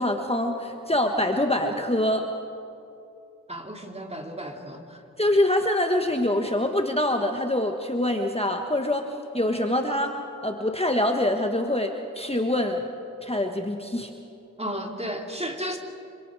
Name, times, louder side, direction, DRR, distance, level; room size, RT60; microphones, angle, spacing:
voice 1, 0.0-2.2 5.2-9.1 9.3-10.2 10.4-12.8 13.2-14.1, left 1 dB, 20° left, 4 dB, 1.4 m, -25 dB
voice 2, 3.5-5.0 14.6-15.8, equal, 20° right, 2 dB, 2.8 m, -33 dB
26.0 x 25.0 x 4.9 m, 2.7 s
cardioid pair, 40°, 33 cm